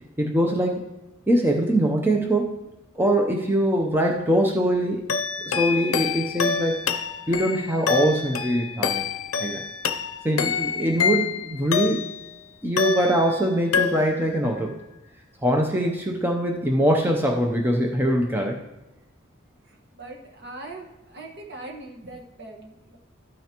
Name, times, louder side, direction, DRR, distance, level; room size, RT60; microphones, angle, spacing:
voice 1, 0.2-0.9 1.3-2.5 3.0-5.2 5.4-6.7 7.3-9.0 9.4-9.7 10.2-12.0 12.6-14.7 15.4-18.6, right 1 dB, 10° right, 1 dB, 0.6 m, -23 dB
sound 1, 5.1-12.3 12.8-13.4 13.7-14.4, left 6 dB, 85° left, 0.5 m, -27 dB
voice 2, 19.7-23.0, right 2 dB, 55° right, 0 dB, 1.5 m, -41 dB
13.0 x 9.2 x 2.9 m, 1.0 s
head